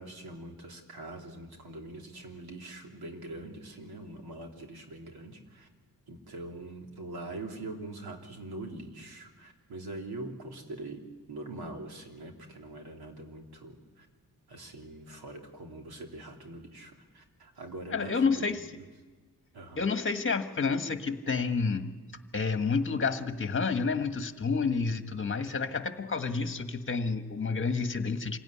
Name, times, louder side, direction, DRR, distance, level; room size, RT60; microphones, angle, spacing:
voice 1, 0.0-5.7 6.1-14.1 14.5-18.6 19.5-19.9, right 2 dB, 85° right, 2 dB, 3.3 m, -43 dB
voice 2, 17.9-18.6 19.8-21.9 22.3-28.4, left 4 dB, 35° left, 8 dB, 1.5 m, -29 dB
26.5 x 17.0 x 9.9 m, 1.4 s
wide cardioid pair, 135°, 37 cm